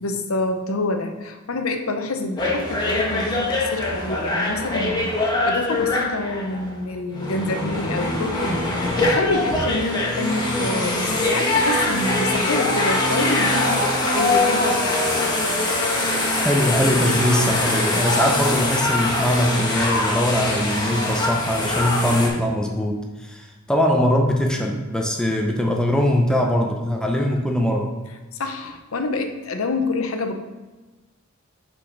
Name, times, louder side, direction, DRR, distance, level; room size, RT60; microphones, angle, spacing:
voice 1, 0.0-15.3 28.4-30.4, left 2 dB, 80° left, 6 dB, 0.7 m, -27 dB
sound 1, 2.4-6.7 7.1-22.3, left 2 dB, 20° left, 1.3 m, -23 dB
voice 2, 16.4-27.9, equal, 5° left, 1 dB, 0.6 m, -21 dB
6.8 x 4.9 x 3.9 m, 1.2 s
head